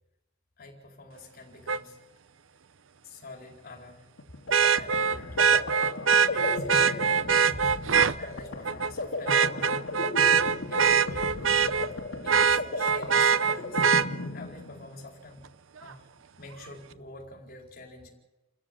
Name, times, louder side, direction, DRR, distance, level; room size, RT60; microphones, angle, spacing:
voice 1, 0.6-2.0 3.0-4.1 4.8-5.4 5.9-6.0 6.3-7.7 8.2-9.8 10.1-10.4 10.7-15.5 15.8-16.1 16.4-18.1, left 2 dB, 50° left, 0 dB, 4.4 m, -47 dB
Vehicle horn car horn honking, 1.7-1.8 4.5-8.1 8.7-8.9 9.3-11.9 12.3-14.1 15.9-16.0, right 7 dB, 70° right, 0.7 m, -23 dB
sound 1, 4.2-15.0, left 2 dB, 65° left, 1.9 m, -36 dB
29.5 x 13.5 x 7.7 m, 1.1 s
head